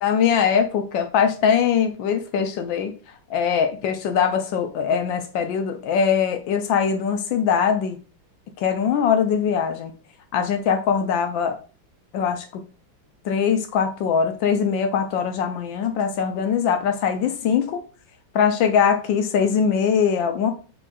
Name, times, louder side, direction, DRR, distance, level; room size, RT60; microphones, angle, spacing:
voice 1, 0.0-2.9 3.3-8.0 8.6-9.9 10.3-11.6 12.1-12.4 13.2-17.8 18.3-20.5, left 7 dB, 75° left, 6 dB, 1.3 m, -21 dB
4.9 x 3.6 x 2.3 m, 0.35 s
omnidirectional pair, 2.1 m